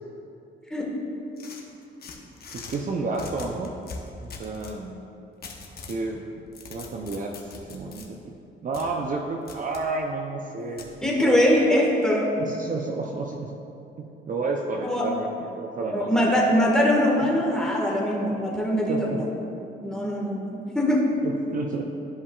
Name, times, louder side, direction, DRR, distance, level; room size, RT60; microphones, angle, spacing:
sound 1, 1.4-2.8 3.1-4.8 5.4-6.0 6.4-8.1 8.7-8.9 9.5-9.8 10.8-10.9, left 4 dB, 50° left, 1.1 m, -41 dB
voice 1, 2.5-3.7 4.2-5.0 5.9-6.4 6.7-8.4 8.6-10.9 11.2-11.4 12.4-13.5 14.0-16.3 17.2-17.4 18.9-19.3 21.2-21.8, right 3 dB, 40° right, 1 dB, 0.6 m, -31 dB
voice 2, 11.0-12.3 14.8-15.1 15.8-19.3 19.8-21.1, equal, 5° left, -4 dB, 1.6 m, -22 dB
13.0 x 5.3 x 2.4 m, 2.8 s
cardioid pair, 90°, 20 cm